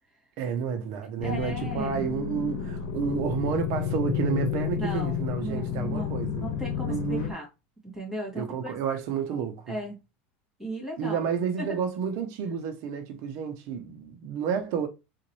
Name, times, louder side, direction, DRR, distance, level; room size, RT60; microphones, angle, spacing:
voice 1, 0.4-6.5 6.8-7.3 8.3-9.7 11.0-14.9, right 7 dB, 60° right, 0.8 m, -30 dB
sound 1, 1.2-7.3, left 8 dB, 70° left, 1.0 m, -31 dB
voice 2, 1.2-2.1 4.8-7.5 7.8-8.7 9.3-10.0 10.6-11.2 11.6-11.7, right 1 dB, 5° right, 2.4 m, -36 dB
3.9 x 2.5 x 3.1 m
supercardioid pair, 130°, 6 cm